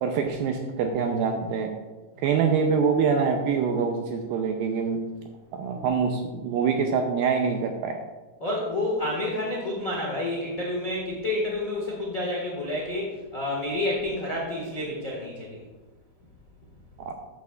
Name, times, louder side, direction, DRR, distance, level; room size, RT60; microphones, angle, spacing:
voice 1, 0.0-1.7 2.2-5.0 5.5-8.0 17.0-17.1, right 6 dB, 80° right, 3 dB, 2.1 m, -25 dB
voice 2, 8.4-15.6, left 1 dB, 65° left, -4 dB, 0.8 m, -29 dB
13.0 x 8.6 x 2.4 m, 1.2 s
omnidirectional pair, 4.7 m